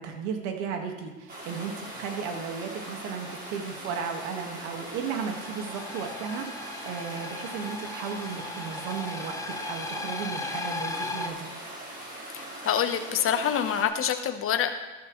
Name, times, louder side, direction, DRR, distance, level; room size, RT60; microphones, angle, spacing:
voice 1, 0.0-11.5, right 6 dB, 80° right, 4 dB, 1.9 m, -35 dB
sound 1, 1.3-13.8, right 1 dB, 30° right, 4.7 m, -41 dB
sound 2, 5.2-11.3, left 3 dB, 10° left, 0.9 m, -37 dB
voice 2, 12.3-14.7, left 9 dB, 40° left, 7 dB, 1.1 m, -26 dB
14.0 x 13.0 x 3.2 m, 1.2 s
supercardioid pair, 95°, 33 cm